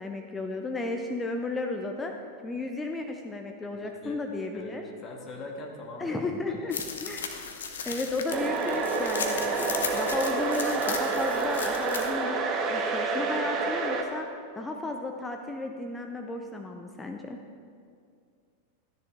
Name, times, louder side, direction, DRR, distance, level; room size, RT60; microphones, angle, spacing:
voice 1, 0.0-2.1 2.4-4.8 6.0-7.3 7.8-14.3 14.5-17.4, left 2 dB, 10° left, 3 dB, 0.6 m, -34 dB
voice 2, 3.7-4.2 4.5-6.9, left 2 dB, 30° left, 0 dB, 1.9 m, -42 dB
sound 1, 6.7-12.1, left 6 dB, 65° left, 1.0 m, -36 dB
sound 2, 8.3-14.0, right 4 dB, 30° right, 1.1 m, -28 dB
13.0 x 10.5 x 3.5 m, 2.2 s
figure-of-eight pair, 90°, 0 cm